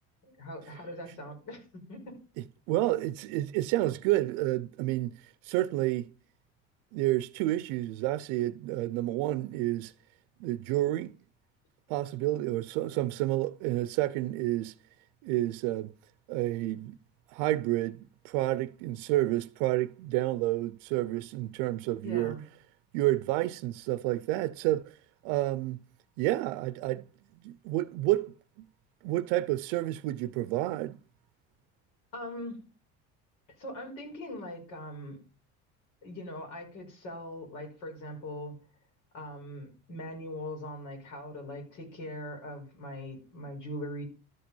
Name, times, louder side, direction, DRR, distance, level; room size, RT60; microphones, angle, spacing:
voice 1, 0.2-2.2 22.0-22.4 32.1-32.6 33.6-35.2 36.0-38.6 39.1-44.0, left 1 dB, 80° left, 5.2 m, -41 dB
voice 2, 2.7-6.1 6.9-9.9 10.4-11.1 11.9-14.7 15.2-15.9 16.3-17.0 17.3-18.0 18.2-22.4 22.9-24.9 25.2-25.8 26.2-27.0 27.4-28.7 29.0-31.0, right 16 dB, 85° right, 0.6 m, -29 dB
12.5 x 5.1 x 5.4 m
cardioid pair, 135°, 29 cm